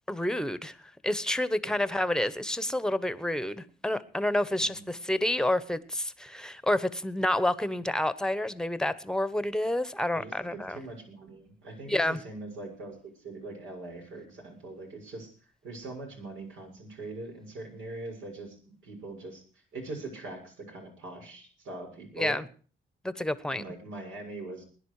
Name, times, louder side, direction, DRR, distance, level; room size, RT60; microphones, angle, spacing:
voice 1, 0.1-0.8 1.0-10.8 11.9-12.2 22.1-22.4 23.0-23.6, left 1 dB, 5° left, 15 dB, 1.1 m, -29 dB
voice 2, 4.5-4.9 10.1-15.3 15.6-18.6 18.8-19.4 19.7-22.4 23.5-24.6, right 2 dB, 80° right, 2 dB, 6.7 m, -42 dB
20.5 x 10.5 x 4.9 m, 0.41 s
cardioid pair, 90°, 20 cm